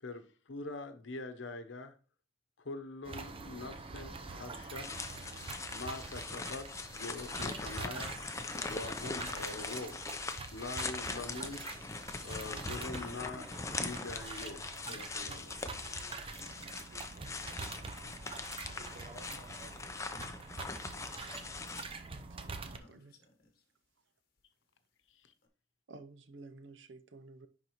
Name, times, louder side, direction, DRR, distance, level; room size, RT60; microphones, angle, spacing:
voice 1, 0.0-1.9 2.6-5.0 5.7-8.2 8.7-10.0 10.5-11.7 12.2-15.7 25.1-25.3, left 2 dB, 90° left, 0.8 m, -44 dB
sound 1, 3.0-22.8, right 3 dB, 30° right, 0.7 m, -46 dB
sound 2, 4.8-21.8, left 3 dB, 15° left, 0.6 m, -41 dB
sound 3, 9.0-11.9 12.1-13.6 14.5-14.6 14.8-15.1 15.4-15.7 16.1-17.9 19.0-19.7 20.1-20.8 22.5-23.6 24.4-24.5 25.4-25.5, left 1 dB, 55° left, 1.2 m, -58 dB
voice 2, 16.0-20.1, right 2 dB, 55° right, 1.5 m, -60 dB
voice 3, 22.3-23.1 25.9-27.5, right 3 dB, 80° right, 0.7 m, -53 dB
10.5 x 4.0 x 3.0 m
head